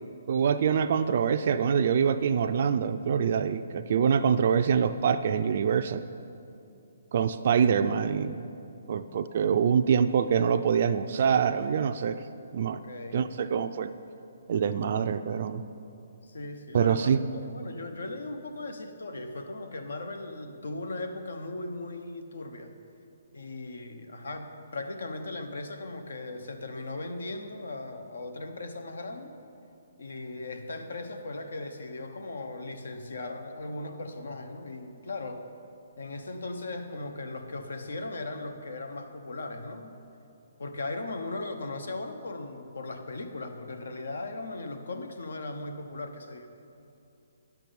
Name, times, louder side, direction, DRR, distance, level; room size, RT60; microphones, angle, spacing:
voice 1, 0.3-6.0 7.1-8.4 8.9-12.2 12.5-12.8 13.1-13.9 14.5-15.6 16.7-17.2, right 7 dB, 50° right, 9 dB, 0.4 m, -25 dB
voice 2, 12.8-13.2 16.2-22.7 23.3-29.3 30.0-35.4 36.0-39.9 40.6-46.5, left 2 dB, 85° left, 6 dB, 1.0 m, -38 dB
10.5 x 6.0 x 6.9 m, 2.6 s
hypercardioid pair, 155°, 0 cm